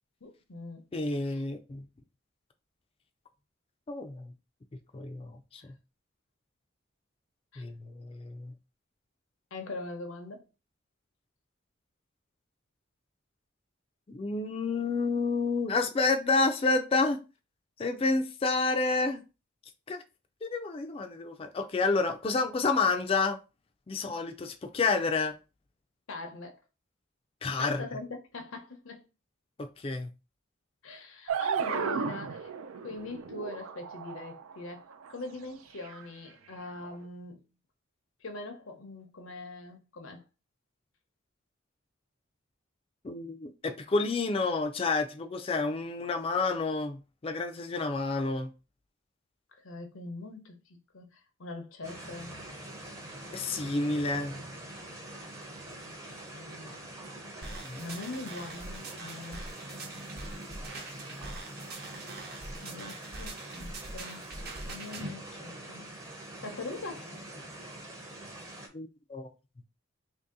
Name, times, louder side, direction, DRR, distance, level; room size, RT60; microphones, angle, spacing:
voice 1, 0.2-0.8 1.1-1.4 5.6-5.7 7.5-7.6 9.5-10.4 26.1-26.6 27.6-29.1 30.8-32.5 32.8-37.4 38.2-40.2 49.6-52.3 55.7-56.8 57.4-59.5 60.7-61.4 61.8-62.2 62.6-64.2 64.6-65.9 66.4-67.1, left 2 dB, 80° left, 0.7 m, -43 dB
voice 2, 0.9-1.8 3.9-4.3 4.9-5.7 7.6-8.5 14.1-17.2 17.8-19.2 19.9-20.0 20.4-23.4 23.9-25.3 27.4-27.8 29.6-30.1 43.0-48.5 53.3-54.3 57.6-57.8 68.7-69.3, left 3 dB, 30° left, 0.3 m, -29 dB
sound 1, 31.3-35.1 35.8-36.0 36.8-37.0, right 6 dB, 90° right, 0.4 m, -34 dB
sound 2, 51.8-68.7, right 1 dB, 15° right, 0.6 m, -44 dB
sound 3, 57.4-65.0, right 2 dB, 50° right, 0.8 m, -44 dB
2.9 x 2.7 x 3.6 m
head